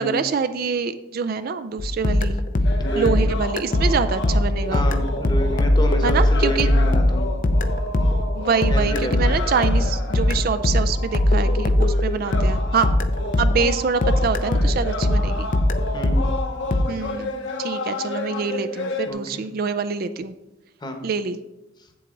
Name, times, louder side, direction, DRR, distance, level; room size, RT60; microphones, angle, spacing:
voice 1, 0.0-2.4 3.0-4.9 6.0-6.7 8.3-12.9 13.4-15.5 16.9-17.3 17.6-20.3 21.0-21.4, right 5 dB, 50° right, 12 dB, 0.4 m, -25 dB
sound 1, 1.8-13.8 14.0-16.8, left 1 dB, 45° left, 0.5 m, -20 dB
sound 2, 2.6-19.1, left 2 dB, 65° left, 1.0 m, -32 dB
voice 2, 2.8-3.3 4.7-7.3 8.7-9.4 15.9-16.4 19.0-19.4 20.8-21.0, right 1 dB, 25° left, 5 dB, 1.0 m, -29 dB
8.0 x 7.6 x 3.8 m, 0.97 s
head